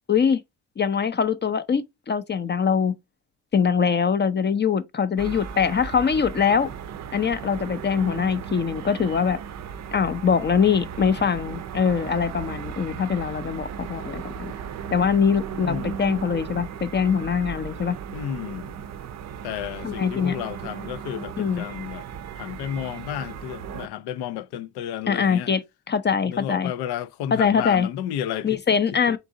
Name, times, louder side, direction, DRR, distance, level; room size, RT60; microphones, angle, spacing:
voice 1, 0.1-0.4 0.8-2.9 3.5-6.7 7.1-9.4 9.9-14.5 14.9-18.0 19.8-20.4 21.4-21.6 25.1-25.6 25.9-26.7 27.3-27.9 28.4-29.2, left 6 dB, 30° left, 0.5 m, -23 dB
sound 1, 5.2-23.9, right 7 dB, 45° right, 0.5 m, -36 dB
voice 2, 15.5-16.2 18.1-18.7 19.4-25.5 26.2-28.6 29.1-29.2, left 10 dB, 85° left, 0.5 m, -32 dB
3.9 x 2.6 x 3.6 m
cardioid pair, 95°, 38 cm